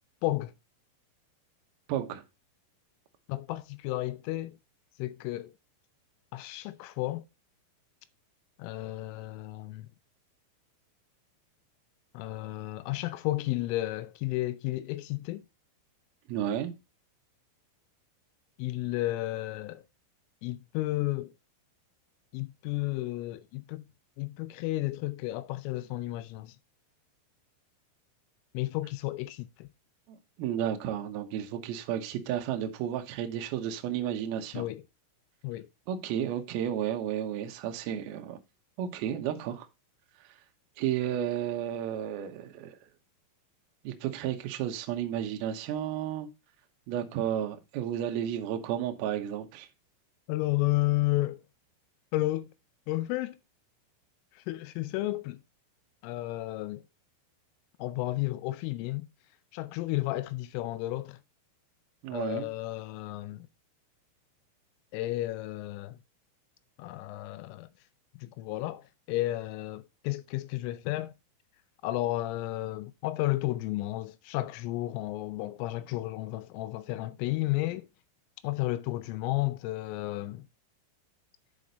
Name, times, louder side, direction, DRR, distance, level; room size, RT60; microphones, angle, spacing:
voice 1, 0.2-0.5 3.3-4.6 5.0-5.5 6.3-7.3 8.6-9.9 12.1-15.4 18.6-19.8 20.4-21.4 22.3-23.9 24.2-26.6 28.5-29.7 34.5-34.8 35.4-35.7 50.3-51.4 52.1-52.5 52.9-53.4 54.3-55.4 56.0-56.8 57.8-59.1 59.5-61.2 62.1-63.5 64.9-66.0 66.8-67.7 68.2-71.1 71.8-77.9 78.4-80.5, left 17 dB, 80° left, 3.1 m, -32 dB
voice 2, 1.9-2.2 16.3-16.7 30.1-34.6 35.9-38.4 38.8-39.7 40.8-42.8 43.8-46.3 46.9-49.7 62.0-62.5, right 10 dB, 85° right, 2.2 m, -32 dB
9.7 x 5.2 x 4.1 m
omnidirectional pair, 5.9 m